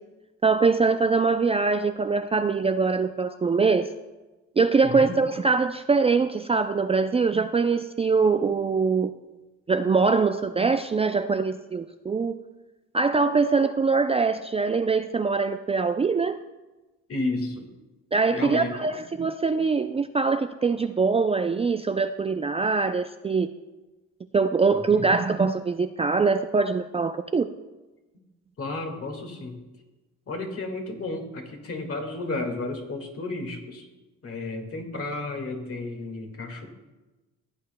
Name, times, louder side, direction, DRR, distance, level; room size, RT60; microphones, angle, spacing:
voice 1, 0.4-3.9 4.6-9.1 9.7-12.4 12.9-16.4 18.1-23.5 24.3-27.5, right 4 dB, 20° right, 8 dB, 0.3 m, -23 dB
voice 2, 4.8-5.2 17.1-17.7 18.3-18.9 24.7-25.1 28.6-29.6 30.3-33.9 34.2-36.7, left 2 dB, 50° left, 4 dB, 1.8 m, -32 dB
15.5 x 8.6 x 2.2 m, 1.1 s
cardioid pair, 90°, 30 cm